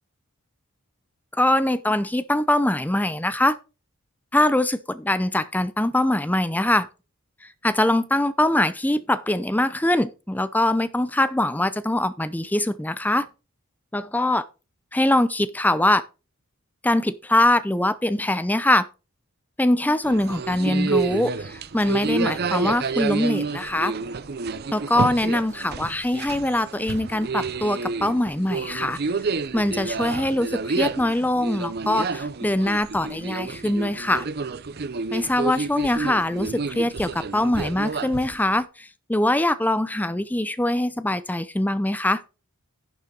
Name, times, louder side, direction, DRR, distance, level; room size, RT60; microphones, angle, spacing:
voice 1, 1.4-3.6 4.3-6.9 7.6-13.3 13.9-14.4 14.9-16.0 16.8-18.8 19.6-23.9 24.7-29.0 29.5-34.3 35.1-42.2, left 1 dB, 10° left, 0.6 m, -23 dB
sound 1, 20.0-38.6, right 4 dB, 50° right, 0.6 m, -29 dB
11.0 x 7.0 x 3.9 m
head